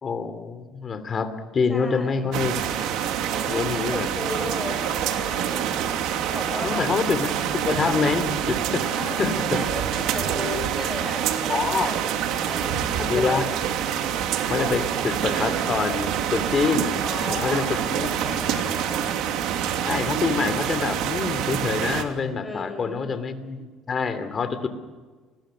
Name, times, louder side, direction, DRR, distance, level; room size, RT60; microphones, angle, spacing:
voice 1, 0.0-2.6 3.5-4.1 6.6-8.9 9.2-9.6 11.5-11.9 13.0-13.4 14.5-16.9 17.3-18.1 19.8-24.7, left 5 dB, 35° left, 10 dB, 3.1 m, -26 dB
voice 2, 1.7-2.3 3.3-5.7 6.3-6.9 8.8-11.9 12.4-13.5 17.0-19.1 22.4-23.1, left 2 dB, 15° left, 4 dB, 7.0 m, -36 dB
sound 1, 2.3-22.0, right 9 dB, 70° right, 2.9 m, -26 dB
30.0 x 21.0 x 6.5 m, 1.4 s
cardioid pair, 125°, 0 cm